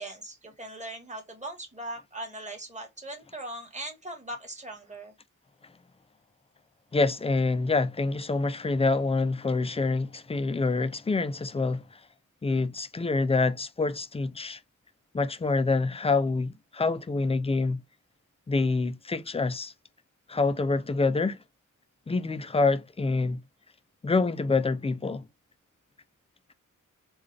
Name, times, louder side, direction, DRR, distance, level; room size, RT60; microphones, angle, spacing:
voice 1, 0.0-5.1, right 1 dB, 20° right, 1.4 m, -40 dB
voice 2, 6.9-12.0 12.4-14.6 15.1-17.8 18.5-19.7 20.3-21.4 22.1-23.4 24.0-25.2, left 3 dB, 20° left, 0.3 m, -26 dB
3.7 x 2.3 x 3.2 m
wide cardioid pair, 110°, 32 cm